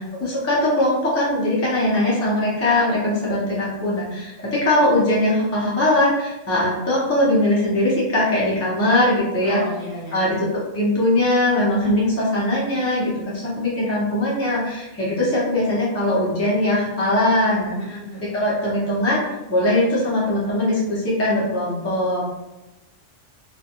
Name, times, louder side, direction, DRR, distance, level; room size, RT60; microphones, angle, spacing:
voice 1, 0.0-9.6 10.1-10.4 10.7-18.0 18.3-22.2, left 1 dB, 20° left, -7 dB, 0.5 m, -21 dB
voice 2, 9.4-10.4 17.7-18.3, left 1 dB, 45° left, -6 dB, 0.9 m, -35 dB
2.4 x 2.2 x 2.8 m, 1.0 s
omnidirectional pair, 1.3 m